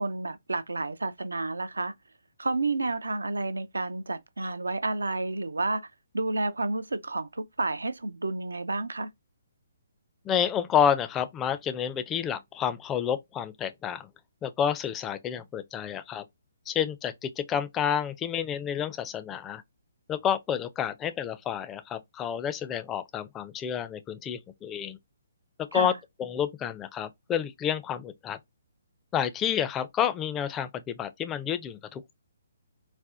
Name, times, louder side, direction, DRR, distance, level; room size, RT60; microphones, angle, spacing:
voice 1, 0.0-1.9 2.4-5.9 6.1-9.1 25.7-25.9, right 2 dB, 80° right, 0.4 m, -30 dB
voice 2, 10.2-14.1 14.4-16.2 16.7-19.6 20.1-25.0 25.7-25.9 26.2-28.4 29.1-32.1, left 9 dB, 15° left, 0.4 m, -29 dB
4.1 x 2.1 x 2.4 m
figure-of-eight pair, 135°, 0 cm